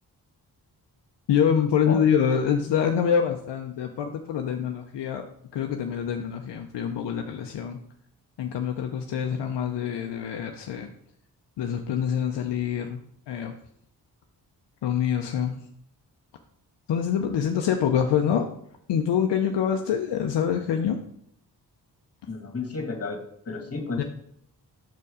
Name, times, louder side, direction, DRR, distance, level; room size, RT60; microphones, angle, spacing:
voice 1, 1.3-5.2 5.5-7.8 8.4-10.9 11.6-13.0 13.3-13.5 14.8-15.7 16.9-18.5 18.9-21.0 24.0-24.1, left 8 dB, 75° left, 4 dB, 0.7 m, -25 dB
voice 2, 22.3-23.2 23.5-24.0, left 4 dB, 35° left, 3 dB, 2.0 m, -32 dB
6.2 x 4.5 x 4.9 m, 0.67 s
supercardioid pair, 45°, 42 cm